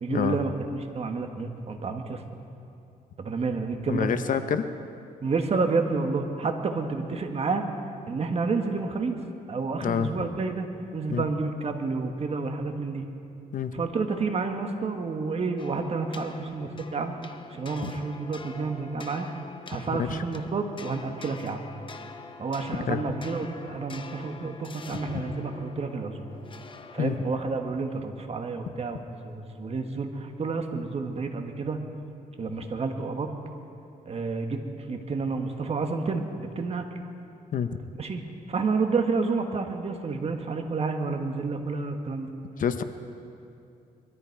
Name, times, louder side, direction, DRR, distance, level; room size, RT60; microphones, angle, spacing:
voice 1, 0.0-2.2 3.2-4.1 5.2-7.6 8.1-9.2 9.5-10.7 10.9-13.1 13.7-17.1 17.5-19.3 19.7-21.6 22.4-26.3 26.9-31.8 32.4-33.3 34.0-37.0 38.0-38.2 38.5-42.3, right 4 dB, 40° right, 5 dB, 1.4 m, -30 dB
voice 2, 3.9-4.7 9.8-10.2 11.1-11.2 13.5-13.8 17.8-17.9 20.0-20.2 22.9-23.0 24.9-25.0 27.0-27.2 28.6-28.7 37.5-37.7 42.6-42.8, left 8 dB, 60° left, 10 dB, 0.8 m, -27 dB
sound 1, 15.6-27.6, left 4 dB, 35° left, 0.9 m, -45 dB
22.0 x 13.5 x 4.7 m, 2.6 s
cardioid pair, 105°, 15 cm